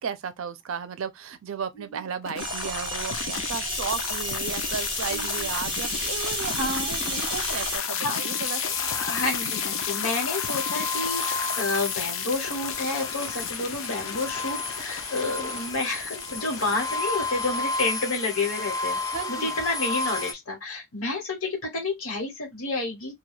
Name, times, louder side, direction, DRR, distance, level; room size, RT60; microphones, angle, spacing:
voice 1, 0.0-6.5 6.9-8.8 15.2-15.6 19.1-19.6, right 6 dB, 75° right, 0.4 m, -34 dB
sound 1, 2.2-18.3, left 8 dB, 70° left, 0.5 m, -32 dB
sound 2, 2.4-7.8, right 3 dB, 25° right, 0.6 m, -33 dB
voice 2, 5.1-5.5 6.6-7.0 8.0-8.2 9.0-19.0 19.3-23.1, left 2 dB, 90° left, 1.1 m, -30 dB
sound 3, 7.9-20.3, left 3 dB, 15° left, 0.4 m, -33 dB
2.3 x 2.2 x 3.0 m
head